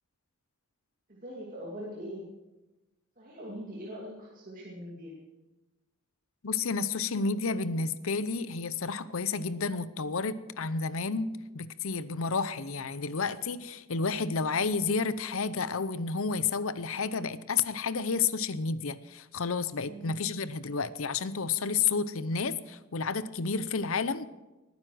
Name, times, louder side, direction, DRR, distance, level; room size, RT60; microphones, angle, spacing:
voice 1, 1.1-2.3 3.2-5.2 19.8-20.2, equal, 40° right, -4 dB, 2.6 m, -42 dB
voice 2, 6.4-11.3 11.5-24.2, left 5 dB, 65° left, 15 dB, 0.7 m, -31 dB
19.5 x 9.6 x 6.2 m, 1.1 s
head